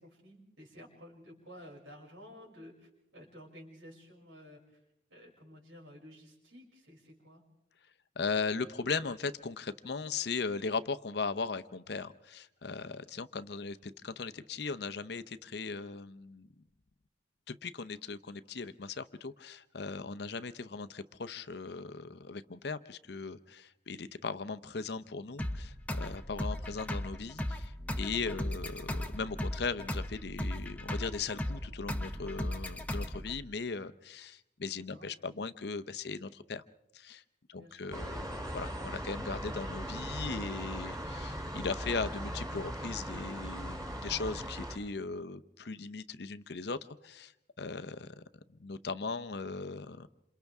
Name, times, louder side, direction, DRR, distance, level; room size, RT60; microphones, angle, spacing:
voice 1, 0.0-4.8 5.1-7.4 34.7-35.1 37.5-38.2, equal, 90° right, -2 dB, 6.3 m, -53 dB
voice 2, 8.2-16.5 17.5-36.6 36.9-37.2 37.5-47.3 47.6-48.2 48.6-50.1, left 4 dB, 60° left, 13 dB, 0.7 m, -38 dB
sound 1, 25.4-33.4, left 1 dB, 10° left, 0.7 m, -37 dB
sound 2, 37.9-44.8, equal, 20° right, 2.6 m, -39 dB
28.0 x 27.5 x 3.6 m, 0.83 s
head